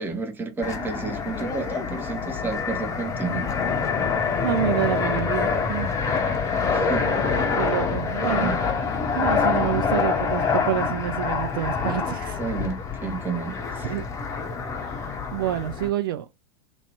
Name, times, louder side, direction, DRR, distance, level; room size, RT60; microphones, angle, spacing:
voice 1, 0.0-3.5 6.7-7.1 8.2-8.6 12.4-13.9, right 4 dB, 15° right, 0.9 m, -31 dB
Fixed-wing aircraft airplane, 0.6-15.9, left 5 dB, 20° left, 0.8 m, -26 dB
voice 2, 4.4-5.9 7.6-8.5 9.1-12.4 13.8-14.0 14.7-16.3, right 12 dB, 55° right, 0.4 m, -28 dB
3.0 x 2.8 x 4.1 m
figure-of-eight pair, 90°, 14 cm